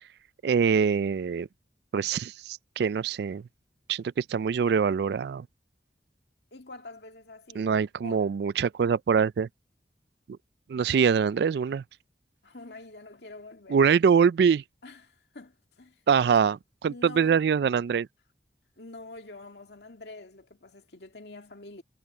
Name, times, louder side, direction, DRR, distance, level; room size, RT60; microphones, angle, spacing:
voice 1, 0.4-1.5 1.9-3.4 3.9-5.5 7.6-9.5 10.3-10.4 10.7-11.8 13.7-14.6 16.1-18.1, right 6 dB, 65° right, 0.3 m, -24 dB
voice 2, 6.5-8.4 12.4-13.9 14.8-16.0 16.8-17.5 18.8-21.8, left 2 dB, 70° left, 2.1 m, -46 dB
head